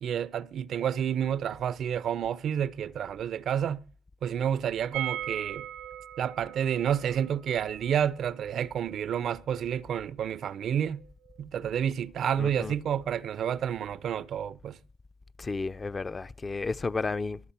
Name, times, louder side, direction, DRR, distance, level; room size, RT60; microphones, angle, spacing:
voice 1, 0.0-3.8 4.2-5.7 6.2-11.0 11.4-14.8, right 9 dB, 65° right, 0.6 m, -30 dB
sound 1, 4.9-10.7 11.0-11.1 11.3-11.4, right 12 dB, 90° right, 0.9 m, -41 dB
voice 2, 12.4-12.7 15.4-17.4, left 3 dB, 30° left, 0.6 m, -32 dB
23.0 x 7.8 x 5.7 m
cardioid pair, 90°, 0 cm